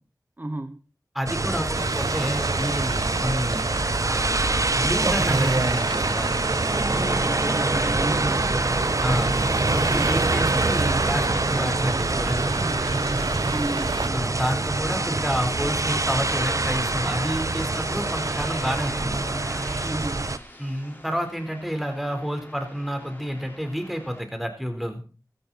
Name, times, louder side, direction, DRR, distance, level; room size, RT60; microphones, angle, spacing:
voice 1, 0.4-0.8 6.9-8.7 9.9-10.2 13.5-14.0 19.8-20.3, right 1 dB, 25° right, 9 dB, 1.0 m, -33 dB
voice 2, 1.1-3.7 4.1-6.3 9.0-9.3 9.7-12.8 14.1-19.2 20.6-25.0, equal, ahead, 5 dB, 4.0 m, -29 dB
sound 1, 1.3-20.4, right 2 dB, 45° right, 1.1 m, -25 dB
Traffic noise roadway noise, 1.7-14.1, right 4 dB, 90° right, 0.8 m, -31 dB
sound 2, 6.9-24.2, left 1 dB, 25° left, 4.4 m, -45 dB
14.5 x 14.0 x 4.2 m, 0.36 s
wide cardioid pair, 50°, 7 cm